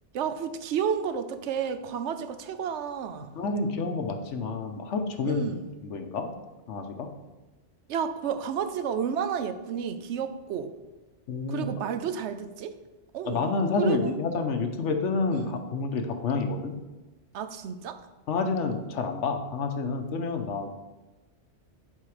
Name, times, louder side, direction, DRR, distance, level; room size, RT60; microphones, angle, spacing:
voice 1, 0.1-3.3 5.2-5.7 7.9-10.7 11.5-12.7 13.1-13.5 13.8-14.1 15.3-15.6 17.3-18.0, right 7 dB, 75° right, 10 dB, 0.9 m, -31 dB
voice 2, 3.4-5.5 5.8-6.3 6.7-7.1 11.3-11.7 13.2-16.8 18.3-20.7, left 4 dB, 80° left, 6 dB, 1.1 m, -29 dB
7.6 x 4.7 x 4.9 m, 1.1 s
omnidirectional pair, 1.2 m